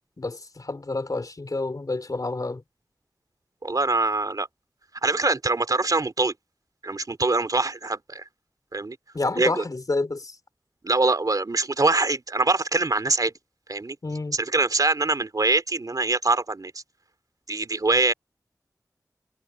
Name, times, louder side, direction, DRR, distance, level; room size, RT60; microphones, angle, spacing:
voice 1, 0.2-2.6 9.1-10.4 14.0-14.4, left 2 dB, 60° left, 3.6 m, -29 dB
voice 2, 3.6-4.5 5.0-6.3 6.8-8.2 8.7-9.0 9.4-9.6 10.8-13.3 13.7-14.0 14.3-16.7 17.5-18.1, right 3 dB, 60° right, 3.1 m, -23 dB
wide cardioid pair, 55°, 7 cm